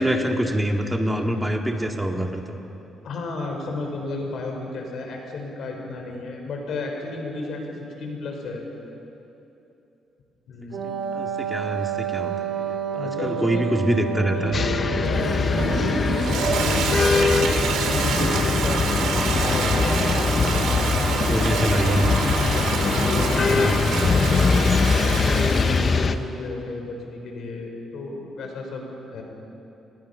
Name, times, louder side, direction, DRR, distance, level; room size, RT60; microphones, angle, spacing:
voice 1, 0.0-2.6 10.8-14.6 21.2-22.1 23.5-24.0, right 1 dB, 10° right, 3 dB, 2.0 m, -25 dB
voice 2, 3.0-8.6 10.5-10.8 12.9-13.7 14.1-14.6 15.0-17.5 17.8-22.0 22.4-24.6 25.3-28.8 29.1-29.2, left 3 dB, 70° left, 1 dB, 4.4 m, -33 dB
Wind instrument woodwind instrument, 10.7-18.8, right 7 dB, 65° right, 2.6 m, -31 dB
sound 1, 14.5-26.2, left 4 dB, 40° left, 0.9 m, -22 dB
Toilet flush, 15.0-26.1, right 5 dB, 85° right, 2.3 m, -27 dB
26.0 x 20.5 x 5.6 m, 3.0 s
cardioid pair, 90°, 0 cm